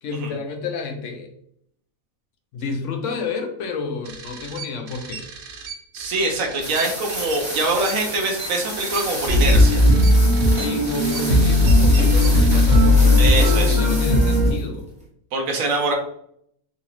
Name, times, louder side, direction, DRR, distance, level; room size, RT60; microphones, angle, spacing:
voice 1, 0.0-1.3 2.5-5.2 10.5-14.8, left 5 dB, 70° left, 4 dB, 0.9 m, -30 dB
sound 1, 4.0-12.8, right 5 dB, 60° right, 0.8 m, -37 dB
voice 2, 5.9-9.9 13.2-13.8 15.3-15.9, right 2 dB, 80° right, 1 dB, 1.2 m, -24 dB
sound 2, 6.6-14.6, equal, 5° right, 0.7 m, -32 dB
sound 3, 9.3-14.5, left 1 dB, 40° right, 1.7 m, -16 dB
3.8 x 2.5 x 2.9 m, 0.70 s
omnidirectional pair, 1.4 m